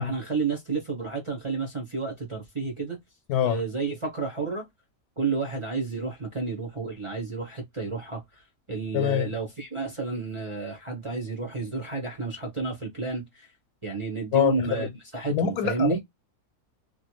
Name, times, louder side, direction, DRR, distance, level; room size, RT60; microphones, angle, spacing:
voice 1, 0.0-3.0 3.4-4.6 5.2-8.2 8.7-13.5 13.8-14.9 15.1-16.0, right 4 dB, 30° right, 0.6 m, -31 dB
voice 2, 3.3-3.6 8.9-9.3 14.3-14.9 15.3-16.0, left 10 dB, 90° left, 1.1 m, -25 dB
3.0 x 2.2 x 2.9 m
omnidirectional pair, 1.6 m